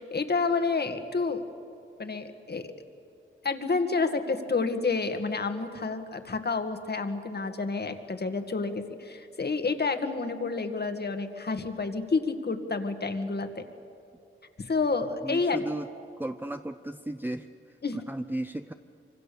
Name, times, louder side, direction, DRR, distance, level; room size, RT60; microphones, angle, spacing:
voice 1, 0.0-1.4 2.0-2.7 3.4-13.6 14.6-15.6 17.8-18.0, left 4 dB, 50° left, 7 dB, 1.9 m, -29 dB
voice 2, 15.2-15.9 16.2-17.5 17.9-18.7, right 1 dB, 10° right, 8 dB, 0.6 m, -34 dB
26.0 x 25.5 x 7.0 m, 2.7 s
wide cardioid pair, 85°, 21 cm